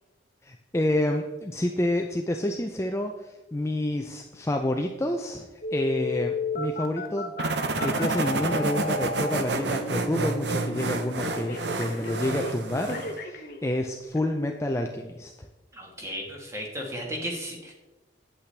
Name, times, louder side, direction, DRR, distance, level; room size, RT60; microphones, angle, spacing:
voice 1, 0.4-7.3 7.8-15.3, left 1 dB, 15° left, 3 dB, 0.4 m, -29 dB
Telephone, 5.6-13.6 14.2-14.3, left 3 dB, 50° left, 0.9 m, -34 dB
sound 1, 7.4-13.2, right 3 dB, 65° right, 0.7 m, -29 dB
voice 2, 15.7-17.7, equal, 15° right, 0 dB, 1.4 m, -35 dB
8.4 x 8.2 x 3.3 m, 1.1 s
head